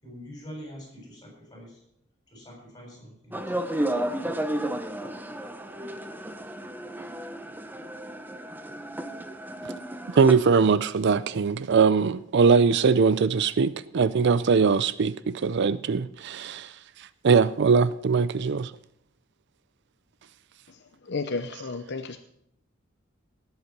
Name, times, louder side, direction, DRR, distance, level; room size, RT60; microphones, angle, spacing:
voice 1, 0.0-1.8 2.3-3.6, equal, 20° left, 7.4 m, -44 dB
sound 1, 3.3-10.3, right 1 dB, 10° right, 0.9 m, -33 dB
voice 2, 10.1-16.7 17.2-18.7, right 5 dB, 60° right, 0.4 m, -21 dB
voice 3, 20.7-22.2, left 3 dB, 60° left, 0.8 m, -33 dB
18.5 x 8.1 x 6.0 m
head